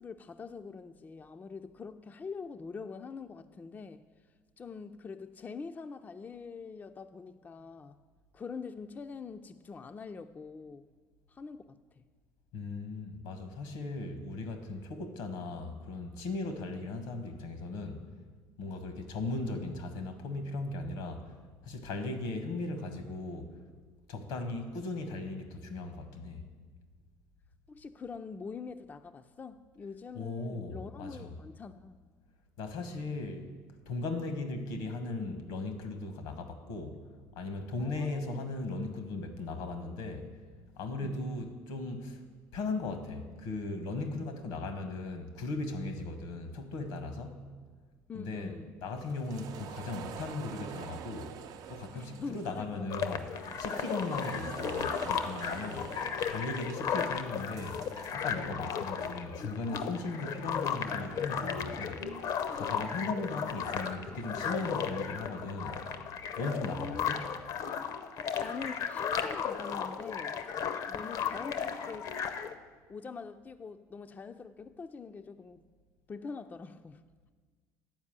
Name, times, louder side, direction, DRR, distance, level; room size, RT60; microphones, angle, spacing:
voice 1, 0.0-4.0 4.6-8.0 8.3-10.9 11.3-12.0 27.7-31.9 37.8-38.5 41.0-41.2 48.1-48.7 51.9-52.9 58.5-58.7 62.7-63.1 66.4-67.1 68.4-70.4 70.8-72.2 72.9-75.6 76.1-77.0, left 5 dB, 25° left, 8 dB, 0.4 m, -44 dB
voice 2, 12.5-18.1 18.6-21.3 21.6-23.5 24.1-26.4 30.1-31.3 32.6-33.4 33.9-37.0 37.4-40.3 40.8-42.2 42.5-47.5 48.1-48.5 48.8-51.4 51.7-53.2 53.6-55.9 56.3-57.8 58.1-62.0 62.5-65.8 66.4-67.2, left 3 dB, 80° left, 8 dB, 1.1 m, -37 dB
sound 1, 49.0-58.1, right 8 dB, 60° right, 0.5 m, -46 dB
sound 2, 52.9-72.5, left 7 dB, 60° left, 0.6 m, -35 dB
9.6 x 4.6 x 7.3 m, 1.5 s
supercardioid pair, 85°, 7 cm